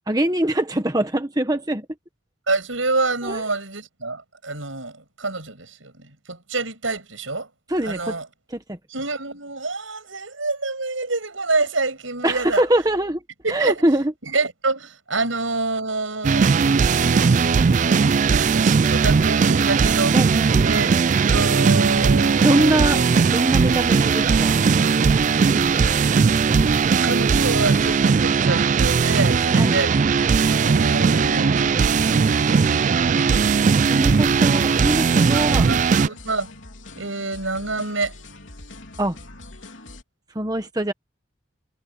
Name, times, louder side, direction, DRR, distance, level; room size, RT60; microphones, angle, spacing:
voice 1, 0.1-1.9 3.2-3.4 7.7-8.2 8.5-8.8 12.2-13.2 13.5-14.1 20.1-20.7 22.4-23.0 23.3-25.1 29.5-29.7 33.8-35.7 39.0-39.2 40.3-40.9, right 1 dB, 20° right, 1.3 m, -23 dB
voice 2, 2.5-7.5 7.8-8.3 8.9-12.6 13.4-13.8 14.2-20.2 20.6-20.9 21.3-23.1 27.0-29.9 30.5-33.6 35.3-36.5 37.0-38.1, right 3 dB, 80° right, 7.4 m, -27 dB
sound 1, 16.2-36.1, right 5 dB, 40° right, 0.3 m, -18 dB
sound 2, 23.7-40.0, left 2 dB, 70° left, 3.6 m, -42 dB
head